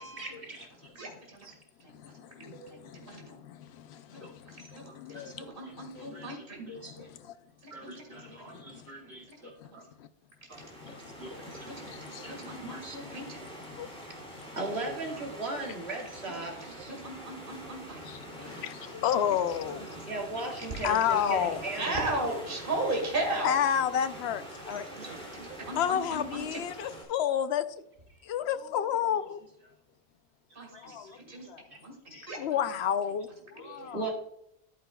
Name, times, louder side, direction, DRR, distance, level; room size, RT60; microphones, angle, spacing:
voice 1, 0.0-1.1 1.4-1.5 4.2-4.3 5.1-7.1 7.7-9.8 10.5-10.6 10.8-10.9 11.2-11.3 12.2-13.0 14.6-16.9 18.4-18.5 20.1-22.1 30.7-31.8 32.1-32.3 33.6-34.1, right 2 dB, 85° right, 0 dB, 2.3 m, -39 dB
voice 2, 1.0-1.5 1.8-1.9 2.4-3.3 4.1-4.3 4.6-6.6 7.8-7.9 11.5-13.4 16.6-18.0 18.4-18.7 19.8-20.0 21.8-23.5 24.9-26.6 30.6-31.0 31.3-31.5 31.8-32.4 33.6-33.9, right 2 dB, 55° right, 1 dB, 2.1 m, -37 dB
voice 3, 1.9-5.4 5.7-6.3 7.2-7.3 8.1-8.3 8.7-8.9 9.6-9.7 10.0-10.1 10.6-12.6 13.1-13.9 14.4-14.5 18.0-19.8 20.8-21.6 23.4-24.9 25.8-27.8 28.2-29.4 30.7-31.2 31.5-31.6 32.1-34.0, left 9 dB, 85° left, 12 dB, 0.9 m, -32 dB
sound 1, 10.5-27.0, right 1 dB, 5° left, 2.5 m, -45 dB
11.0 x 9.4 x 2.3 m, 0.78 s
omnidirectional pair, 1.1 m